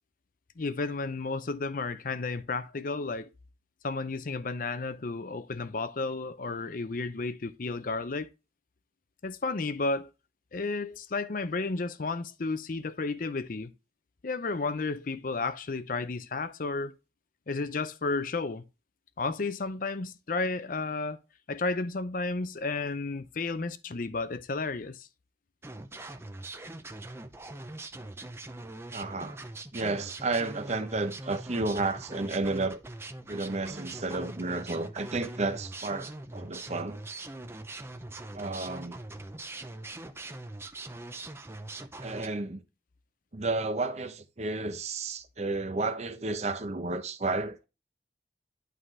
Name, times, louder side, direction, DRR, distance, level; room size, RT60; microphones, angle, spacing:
voice 1, 0.6-3.3 3.8-8.3 9.2-10.1 10.5-13.7 14.2-17.0 17.5-18.6 19.2-21.2 21.5-25.1, left 3 dB, 50° left, 0.6 m, -32 dB
sound 1, 25.6-42.3, right 2 dB, 15° right, 0.5 m, -42 dB
voice 2, 28.9-29.4 29.7-32.8 33.3-37.0 38.3-39.0 42.0-42.6 43.3-47.6, right 3 dB, 40° right, 0.8 m, -32 dB
11.0 x 3.8 x 3.2 m
head